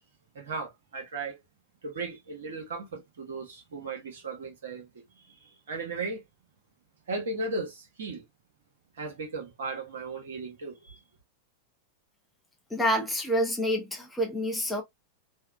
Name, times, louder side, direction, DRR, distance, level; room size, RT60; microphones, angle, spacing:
voice 1, 0.3-1.4 1.8-5.0 5.4-6.2 7.1-8.2 9.0-11.0, right 3 dB, 65° right, 0.9 m, -36 dB
voice 2, 12.7-14.8, equal, 10° left, 0.7 m, -27 dB
2.6 x 2.1 x 2.2 m
figure-of-eight pair, 90°, 0 cm